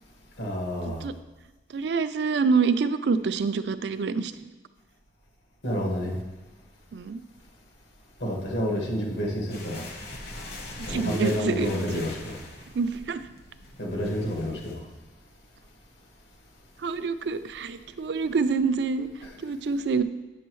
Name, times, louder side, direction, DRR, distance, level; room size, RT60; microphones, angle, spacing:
voice 1, 0.4-1.0 5.6-6.2 8.2-9.9 10.9-12.3 13.8-14.8 19.2-19.3, equal, 80° left, -1 dB, 1.7 m, -29 dB
voice 2, 1.7-4.3 6.9-7.2 10.9-11.7 12.7-13.2 16.8-19.1 19.4-20.0, right 5 dB, 75° right, 12 dB, 0.4 m, -26 dB
sound 1, 9.5-14.7, left 2 dB, 60° left, 1.2 m, -42 dB
9.2 x 6.2 x 3.1 m, 1.2 s
head